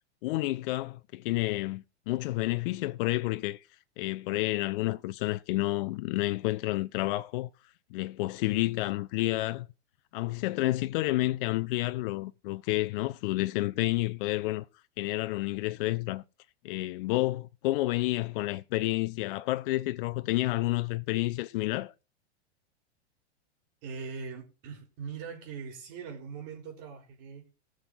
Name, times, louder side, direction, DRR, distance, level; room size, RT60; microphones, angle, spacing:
voice 1, 0.2-3.6 4.0-7.5 7.9-9.7 10.1-14.7 15.0-16.2 16.6-21.9, left 19 dB, 50° left, 0.6 m, -30 dB
voice 2, 23.8-27.5, right 5 dB, 50° right, 4.4 m, -41 dB
17.5 x 6.3 x 4.0 m
hypercardioid pair, 125°, 35 cm